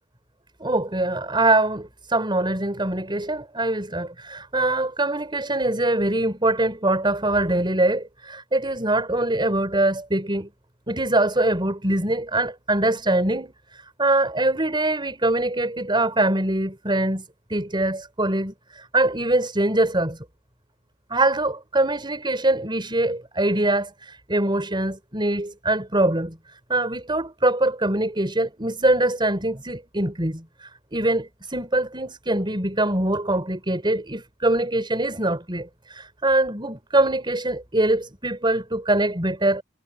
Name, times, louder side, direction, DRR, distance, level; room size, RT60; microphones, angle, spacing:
voice 1, 0.6-10.5 10.9-17.2 17.5-20.2 21.1-26.4 26.7-39.6, right 2 dB, 25° right, 5.4 m, -23 dB
head